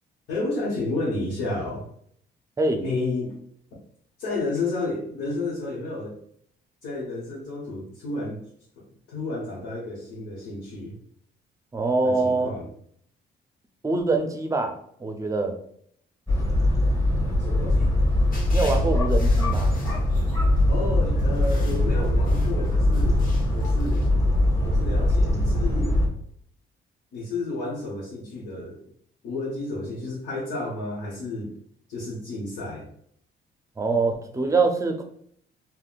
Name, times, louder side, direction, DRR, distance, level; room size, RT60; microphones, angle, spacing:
voice 1, 0.3-1.9 2.8-3.3 4.2-6.1 6.8-8.4 9.1-10.9 12.0-12.7 17.4-18.0 20.7-23.2 23.5-24.1 24.6-26.0 27.1-28.8 29.2-31.5 31.9-32.9, left 2 dB, 90° left, -6 dB, 0.9 m, -31 dB
voice 2, 11.7-12.5 13.8-15.6 18.5-19.7 33.8-35.0, right 3 dB, 15° right, 5 dB, 0.5 m, -24 dB
sound 1, 16.3-26.1, left 1 dB, 15° left, 0.9 m, -22 dB
sound 2, 18.3-20.6 21.2-24.1, left 2 dB, 45° left, 0.8 m, -45 dB
3.5 x 2.1 x 2.3 m, 0.66 s
cardioid pair, 90°, 20 cm